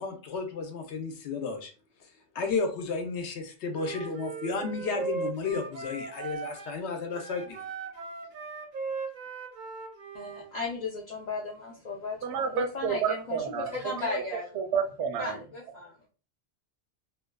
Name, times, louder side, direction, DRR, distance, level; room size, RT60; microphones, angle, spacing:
voice 1, 0.0-1.7 2.3-7.6, left 4 dB, 80° left, 5 dB, 0.9 m, -33 dB
Wind instrument woodwind instrument, 3.7-6.8 7.1-10.5, right 5 dB, 55° right, 0.6 m, -38 dB
voice 2, 10.1-14.5 15.2-15.9, left 3 dB, 50° left, -4 dB, 0.6 m, -36 dB
voice 3, 12.2-14.2 14.5-15.4, right 7 dB, 85° right, 5 dB, 0.9 m, -30 dB
2.6 x 2.3 x 2.2 m, 0.35 s
omnidirectional pair, 1.1 m